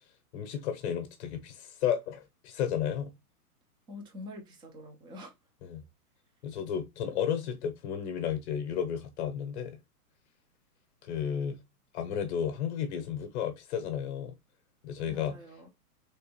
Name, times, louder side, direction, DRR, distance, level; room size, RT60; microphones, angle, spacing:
voice 1, 0.3-3.1 5.6-5.8 6.4-9.8 11.0-11.6 11.9-14.3 14.8-15.4, left 8 dB, 45° left, 0.8 m, -33 dB
voice 2, 3.9-5.3 15.1-15.7, left 2 dB, 10° right, 0.5 m, -46 dB
3.5 x 3.4 x 2.9 m
hypercardioid pair, 125°, 46 cm